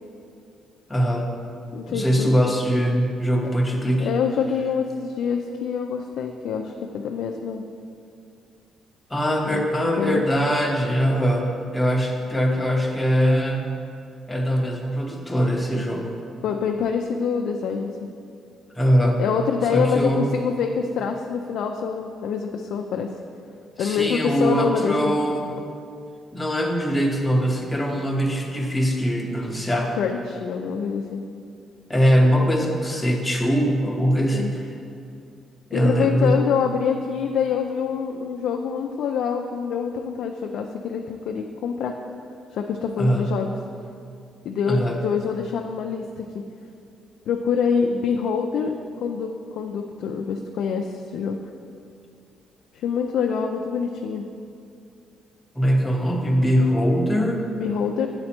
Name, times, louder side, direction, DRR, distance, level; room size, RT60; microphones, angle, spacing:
voice 1, 0.9-1.3 1.9-4.1 9.1-13.7 14.3-16.1 18.7-19.2 19.7-20.3 23.8-25.5 26.3-30.0 31.9-34.6 35.7-36.4 43.0-43.3 44.7-45.0 55.5-57.5, equal, 10° left, 1 dB, 0.9 m, -22 dB
voice 2, 1.7-2.3 4.0-7.6 9.4-9.6 10.0-10.3 16.4-17.9 19.2-23.1 23.8-25.2 30.0-31.2 34.3-34.5 35.7-41.9 42.5-43.5 44.4-46.4 47.3-51.4 52.7-54.3 57.6-58.1, left 6 dB, 75° left, 3 dB, 0.3 m, -25 dB
7.7 x 4.2 x 4.4 m, 2.5 s
cardioid pair, 90°, 0 cm